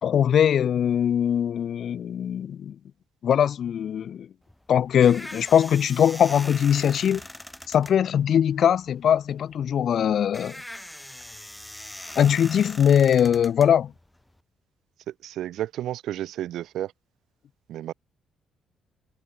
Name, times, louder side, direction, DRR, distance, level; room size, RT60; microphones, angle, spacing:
voice 1, 0.0-2.8 3.2-4.3 4.7-7.2 7.7-10.6 12.2-13.9, left 9 dB, 60° left, 0.5 m, -21 dB
sound 1, 4.4-14.4, left 1 dB, 5° left, 3.1 m, -42 dB
voice 2, 15.1-16.9 17.7-17.9, right 12 dB, 80° right, 2.2 m, -32 dB
cardioid pair, 90°, 0 cm